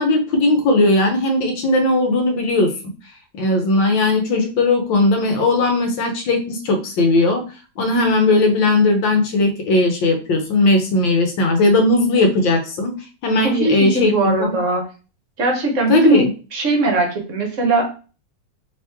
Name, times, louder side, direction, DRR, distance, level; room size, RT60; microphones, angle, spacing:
voice 1, 0.0-2.7 3.3-7.4 7.8-12.9 13.2-14.5 15.9-16.3, left 2 dB, 85° left, 4 dB, 1.6 m, -17 dB
voice 2, 13.4-14.8 15.4-16.3 16.5-17.9, right 2 dB, 55° right, 2 dB, 1.0 m, -19 dB
3.5 x 2.9 x 3.4 m, 0.35 s
omnidirectional pair, 2.0 m